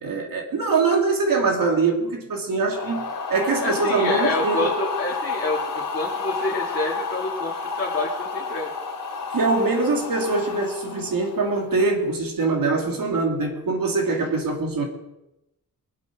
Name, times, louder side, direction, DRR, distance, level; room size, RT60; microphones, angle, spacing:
voice 1, 0.0-4.7 9.3-14.8, right 3 dB, 90° right, 2.5 m, -23 dB
sound 1, 2.7-11.8, left 4 dB, 85° left, 2.3 m, -30 dB
voice 2, 3.6-8.7, left 2 dB, 35° left, 2.0 m, -28 dB
22.5 x 8.6 x 4.7 m
wide cardioid pair, 165°, 33 cm